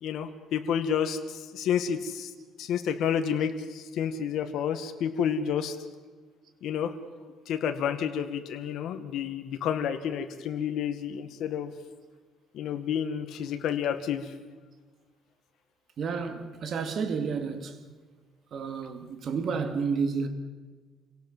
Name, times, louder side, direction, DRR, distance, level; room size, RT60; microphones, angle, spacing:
voice 1, 0.0-2.3 2.6-5.8 6.6-6.9 7.5-11.7 12.5-14.3, left 8 dB, 65° left, 1.9 m, -30 dB
voice 2, 16.0-17.8 18.5-20.3, right 5 dB, 50° right, 2.4 m, -31 dB
28.0 x 17.5 x 7.5 m
cardioid pair, 130°, 0 cm